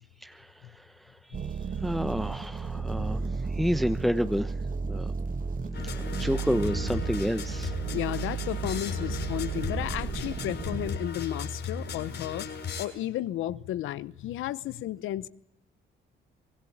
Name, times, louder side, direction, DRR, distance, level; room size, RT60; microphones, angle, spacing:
sound 1, 1.3-11.0, right 5 dB, 45° right, 2.1 m, -33 dB
voice 1, 1.8-4.5 4.9-5.1 6.2-7.7, equal, ahead, 1.0 m, -29 dB
sound 2, 5.7-12.8, left 5 dB, 60° left, 7.2 m, -36 dB
voice 2, 7.9-12.5 12.8-15.3, left 13 dB, 85° left, 1.0 m, -33 dB
24.5 x 19.5 x 8.7 m
cardioid pair, 90°, 20 cm